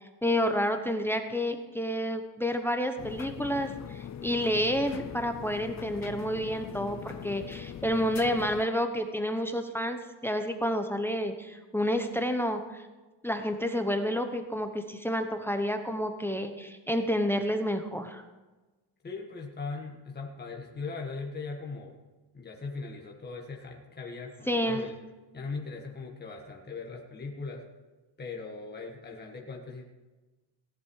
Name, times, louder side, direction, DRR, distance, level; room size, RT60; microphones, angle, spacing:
voice 1, 0.2-12.8 13.2-18.2 24.5-24.9, equal, 5° left, 7 dB, 0.8 m, -29 dB
sound 1, 3.0-8.6, left 9 dB, 40° left, 0.5 m, -41 dB
voice 2, 19.0-22.0 22.3-25.0 25.3-27.6 28.2-29.8, left 4 dB, 25° left, 0 dB, 1.6 m, -39 dB
17.0 x 11.0 x 4.8 m, 1.2 s
wide cardioid pair, 160°, 43 cm